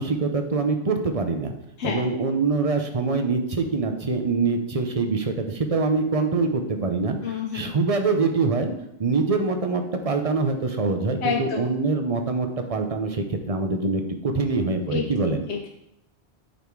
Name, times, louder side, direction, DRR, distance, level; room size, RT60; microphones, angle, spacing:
voice 1, 0.0-1.5 1.8-8.7 9.0-15.4, right 3 dB, 35° right, 6 dB, 0.8 m, -24 dB
voice 2, 7.2-7.7 11.2-11.7 14.9-15.7, left 6 dB, 85° left, 1 dB, 1.0 m, -29 dB
8.6 x 4.3 x 4.7 m, 0.83 s
omnidirectional pair, 1.1 m